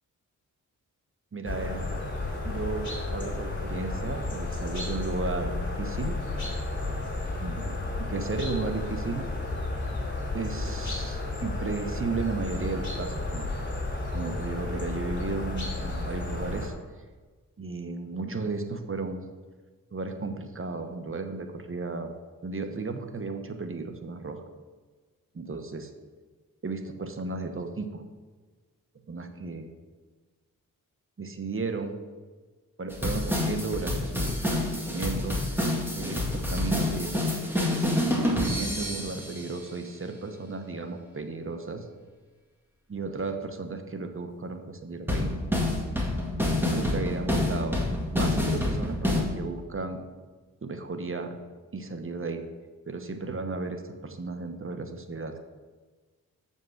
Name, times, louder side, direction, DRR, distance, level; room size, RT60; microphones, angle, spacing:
voice 1, 1.3-2.0 2.4-6.2 7.4-9.3 10.3-13.5 14.1-16.7 17.6-19.2 19.9-22.1 22.4-24.4 25.3-25.9 26.6-28.0 29.1-29.7 31.2-32.0 32.8-37.1 37.7-41.9 42.9-45.3 46.6-47.8 48.1-50.0 50.6-51.3 51.7-52.4 52.9-55.4, right 3 dB, 40° right, 7 dB, 1.0 m, -34 dB
sound 1, 1.4-16.7, left 2 dB, 35° left, 2.7 m, -32 dB
sound 2, 32.9-39.5 45.1-49.2, left 1 dB, 5° right, 1.9 m, -28 dB
6.9 x 5.5 x 6.3 m, 1.4 s
cardioid pair, 60°, 34 cm